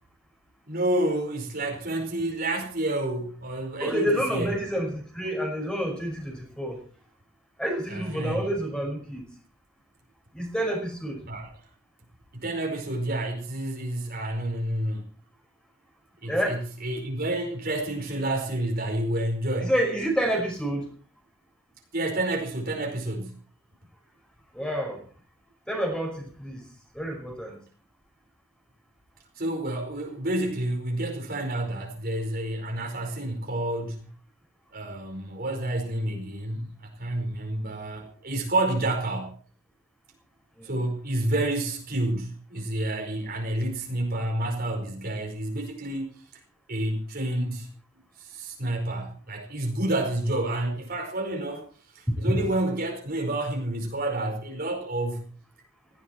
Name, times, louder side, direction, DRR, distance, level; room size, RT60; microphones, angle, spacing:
voice 1, 0.7-4.5 7.9-8.5 11.3-11.5 12.3-15.0 16.2-19.7 21.9-23.4 29.4-34.1 34.7-39.4 40.6-46.2 46.7-47.7 48.2-51.7 51.9-55.2, right 1 dB, 45° right, 2 dB, 4.9 m, -29 dB
voice 2, 3.8-6.8 7.6-9.2 10.3-11.2 16.3-16.6 19.6-20.9 24.5-25.0 25.7-26.6 27.0-27.6 40.6-40.7 52.1-52.4, equal, 5° left, 1 dB, 5.3 m, -28 dB
18.5 x 15.5 x 4.5 m, 0.41 s
head